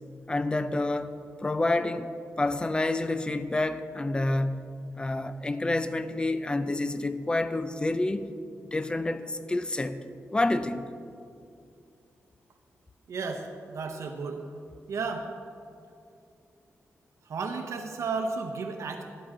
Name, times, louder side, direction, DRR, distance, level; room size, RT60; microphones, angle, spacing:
voice 1, 0.3-1.1 1.4-2.1 2.4-4.7 4.9-8.3 8.7-10.0 10.3-10.9, left 2 dB, 20° left, 11 dB, 0.5 m, -28 dB
voice 2, 13.1-14.4 14.9-15.3 17.3-19.0, right 4 dB, 75° right, 3 dB, 0.8 m, -33 dB
11.5 x 10.0 x 3.8 m, 2.5 s
wide cardioid pair, 120°, 5 cm